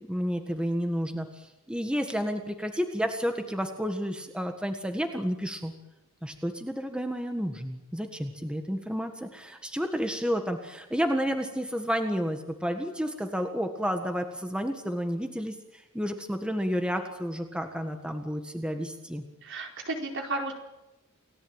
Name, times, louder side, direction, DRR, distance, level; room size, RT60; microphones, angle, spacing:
voice 1, 0.0-5.7 6.2-19.2, equal, 5° right, 5 dB, 1.6 m, -31 dB
voice 2, 19.4-20.5, right 2 dB, 60° right, 2 dB, 4.7 m, -33 dB
29.5 x 17.5 x 9.0 m, 0.97 s
head